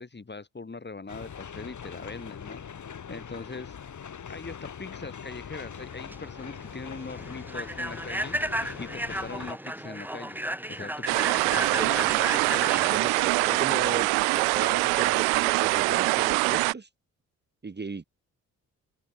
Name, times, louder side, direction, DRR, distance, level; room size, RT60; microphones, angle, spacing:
voice 1, 0.0-2.6 3.1-3.8 4.3-8.4 8.8-10.4 10.7-12.9 13.5-14.0, left 3 dB, 25° left, 2.9 m, -41 dB
sound 1, 1.1-9.5, left 7 dB, 45° left, 2.7 m, -42 dB
Human voice / Train, 5.8-14.7, right 1 dB, 5° right, 4.7 m, -34 dB
sound 2, 11.1-16.7, right 36 dB, 75° right, 1.1 m, -24 dB
voice 2, 12.7-14.1 14.3-16.9 17.6-18.0, right 4 dB, 25° right, 1.9 m, -35 dB
figure-of-eight pair, 40°, 43 cm